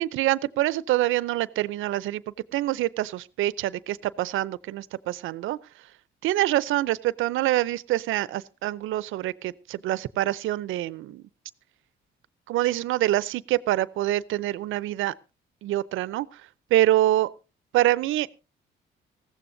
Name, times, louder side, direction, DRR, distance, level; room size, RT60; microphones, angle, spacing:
voice 1, 0.0-2.2 2.5-5.6 6.2-11.2 12.5-15.1 15.6-16.3 16.7-17.3 17.7-18.3, right 15 dB, 85° right, 0.6 m, -25 dB
19.5 x 15.0 x 2.7 m
cardioid pair, 90°, 20 cm